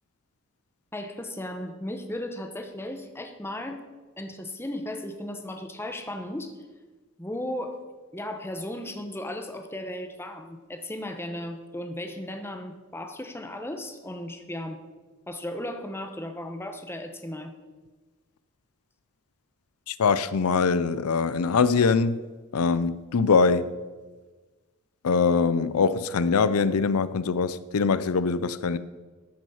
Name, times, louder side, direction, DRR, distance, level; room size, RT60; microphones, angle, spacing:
voice 1, 0.9-3.9 4.2-6.5 7.2-7.8 8.1-14.8 15.3-17.6, left 1 dB, 10° left, 1.0 m, -35 dB
voice 2, 19.9-22.2 22.5-23.7 25.0-28.8, left 5 dB, 90° left, 0.5 m, -23 dB
13.5 x 6.2 x 7.1 m
head